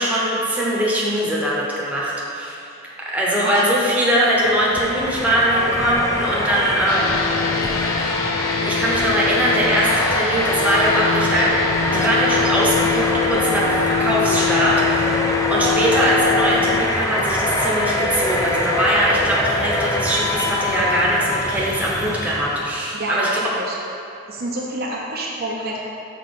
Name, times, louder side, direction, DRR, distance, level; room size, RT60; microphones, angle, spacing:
voice 1, 0.0-2.6 3.1-7.2 8.6-11.6 11.9-23.4, right 1 dB, 5° right, -6 dB, 0.9 m, -21 dB
sound 1, 4.3-22.8, left 1 dB, 15° left, 0.4 m, -24 dB
sound 2, 6.8-16.8, left 8 dB, 85° left, 0.4 m, -24 dB
voice 2, 22.9-23.8 24.3-25.9, right 1 dB, 50° right, -3 dB, 0.6 m, -27 dB
5.9 x 4.6 x 3.8 m, 2.7 s
head